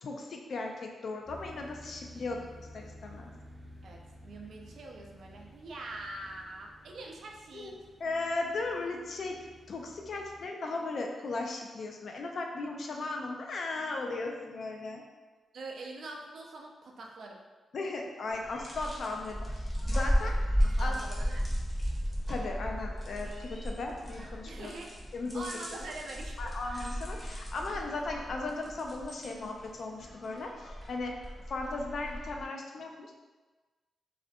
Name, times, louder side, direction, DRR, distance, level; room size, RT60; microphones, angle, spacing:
voice 1, 0.0-3.3 7.5-15.0 17.7-20.3 20.8-21.0 22.3-24.7 25.1-25.4 25.7-25.8 26.4-31.1 31.5-33.1, left 3 dB, 60° left, 2 dB, 0.3 m, -37 dB
sound 1, 1.3-10.4, equal, 25° right, 0.6 m, -52 dB
voice 2, 3.8-7.7 15.5-17.4 20.2-20.4 20.6-21.5 24.5-24.9 25.3-26.5, right 2 dB, 70° right, 0 dB, 0.3 m, -44 dB
sound 2, 18.3-32.4, equal, 15° left, 0.7 m, -34 dB
2.4 x 2.1 x 2.6 m, 1.3 s
cardioid pair, 105°, 0 cm